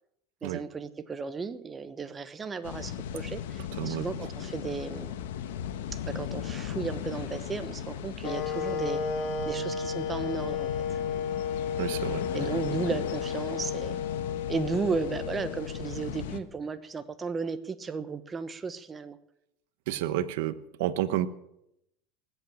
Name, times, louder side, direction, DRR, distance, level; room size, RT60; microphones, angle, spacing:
voice 1, 0.4-5.2 5.9-9.0 9.4-11.0 12.3-14.0 14.5-19.2, right 4 dB, 20° right, 11 dB, 1.0 m, -34 dB
sound 1, 2.6-16.4, left 9 dB, 85° left, 1.2 m, -37 dB
sound 2, 8.2-16.2, left 6 dB, 60° left, 2.8 m, -33 dB
voice 2, 11.8-12.2 19.9-21.3, right 13 dB, 75° right, 12 dB, 0.9 m, -30 dB
19.5 x 8.4 x 7.2 m, 0.80 s
supercardioid pair, 120°, 0 cm